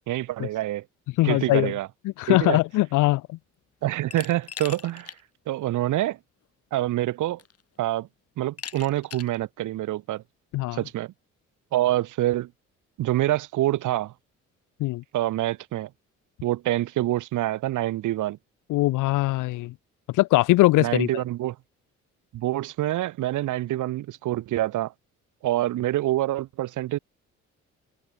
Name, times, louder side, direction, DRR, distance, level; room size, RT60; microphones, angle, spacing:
voice 1, 0.1-0.8 1.2-1.9 2.3-2.6 3.8-5.1 5.5-6.2 6.7-7.4 7.8-8.1 8.4-10.2 10.7-11.1 11.7-12.5 13.0-14.1 15.1-15.9 16.4-18.4 20.8-21.6 22.3-24.9 25.4-27.0, right 15 dB, 80° right, 1.6 m, -26 dB
voice 2, 1.2-1.7 2.2-3.4 10.5-10.8 14.8-15.0 18.7-19.7 20.1-21.1, left 19 dB, 90° left, 0.7 m, -21 dB
Glass, 4.1-5.2 5.6-5.7 6.8-6.9 7.4-7.8 8.6-9.4, left 8 dB, 55° left, 3.8 m, -40 dB
cardioid pair, 90°, 30 cm